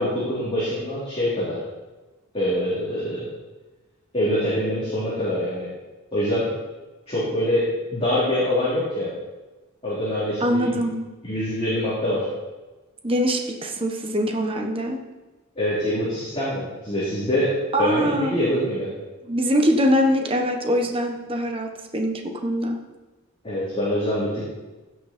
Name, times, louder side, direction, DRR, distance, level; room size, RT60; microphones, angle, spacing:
voice 1, 0.0-1.6 2.3-3.3 4.1-5.7 6.1-6.5 7.1-7.7 7.9-9.1 9.8-10.8 11.2-12.3 15.6-18.9 23.4-24.4, left 1 dB, 25° left, -9 dB, 3.2 m, -24 dB
voice 2, 10.4-11.0 13.0-15.0 17.7-18.4 19.2-22.8, equal, 25° right, 3 dB, 1.2 m, -23 dB
16.0 x 6.3 x 4.4 m, 1.2 s
head